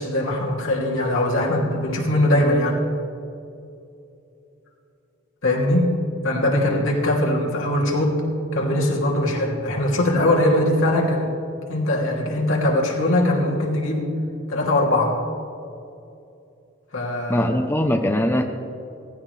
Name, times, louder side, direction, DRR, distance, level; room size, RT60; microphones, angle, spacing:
voice 1, 0.0-2.8 5.4-5.9 6.2-8.2 8.5-11.3 11.7-14.1 14.5-15.2 16.9-17.5, left 1 dB, 70° left, -2 dB, 2.8 m, -21 dB
voice 2, 17.3-18.4, left 1 dB, 10° left, 3 dB, 0.7 m, -21 dB
18.0 x 15.5 x 3.3 m, 2.6 s
head